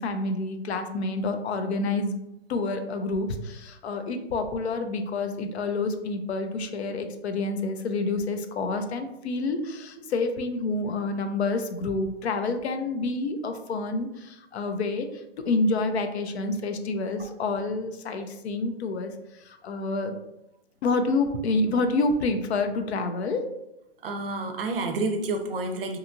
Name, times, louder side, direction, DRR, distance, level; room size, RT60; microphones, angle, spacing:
voice 1, 0.0-2.1 2.5-15.1 15.4-19.1 19.4-20.2 20.8-23.5, left 3 dB, 70° left, 7 dB, 0.5 m, -28 dB
voice 2, 24.0-26.0, right 2 dB, 55° right, 5 dB, 0.5 m, -29 dB
2.8 x 2.3 x 2.6 m, 0.88 s
hypercardioid pair, 150°, 34 cm